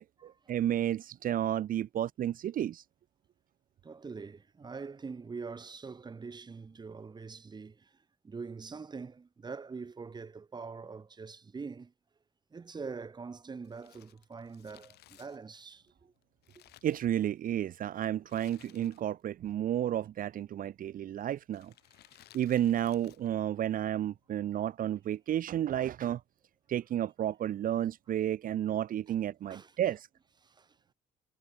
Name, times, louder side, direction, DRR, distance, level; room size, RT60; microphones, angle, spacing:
voice 1, 0.0-2.8 16.8-21.7 22.3-26.2 26.7-30.1, right 11 dB, 55° right, 1.4 m, -32 dB
voice 2, 3.8-8.0 8.2-11.9 12.5-16.1 16.6-16.7 21.9-22.2 29.1-29.2 29.4-29.8 30.4-30.8, right 4 dB, 25° right, 2.6 m, -44 dB
Crumpling crinkling, 13.6-17.6 18.2-19.3 19.5-19.6 20.5-20.8 21.5-23.4 23.6-23.7, left 15 dB, 75° left, 5.9 m, -60 dB
cardioid pair, 110°, 17 cm